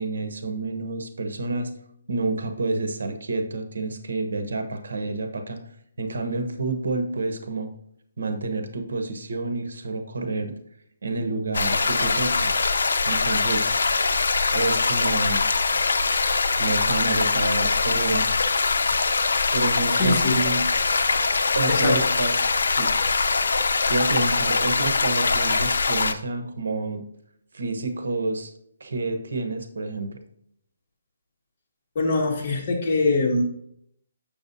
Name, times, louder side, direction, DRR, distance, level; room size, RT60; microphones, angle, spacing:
voice 1, 0.0-1.7 2.1-5.6 6.0-7.7 8.2-10.5 11.0-12.5 13.1-13.9 14.5-15.4 16.6-18.3 19.5-20.6 21.5-22.9 23.9-27.0 27.5-28.5 28.8-30.2, right 3 dB, 75° right, 7 dB, 1.1 m, -28 dB
sound 1, 11.5-26.1, left 4 dB, 80° left, 0.6 m, -22 dB
voice 2, 20.0-20.4 21.7-22.1 32.0-33.5, left 2 dB, 35° left, -2 dB, 2.0 m, -23 dB
7.3 x 6.9 x 2.7 m, 0.70 s
hypercardioid pair, 165°, 0 cm